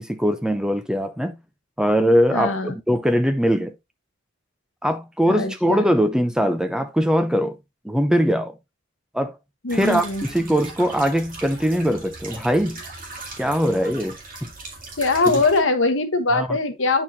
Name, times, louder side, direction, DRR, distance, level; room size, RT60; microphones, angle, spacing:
voice 1, 0.0-1.4 1.8-3.8 4.8-7.6 7.8-8.5 9.1-9.4 9.7-12.8 13.4-14.5 15.3-15.4 16.3-16.6, equal, 5° right, 0.6 m, -21 dB
voice 2, 2.3-2.7 5.3-5.8 9.6-10.2 15.0-17.0, left 3 dB, 75° left, 1.0 m, -21 dB
sound 1, 9.7-15.6, right 3 dB, 45° right, 1.9 m, -39 dB
8.7 x 4.6 x 2.7 m
head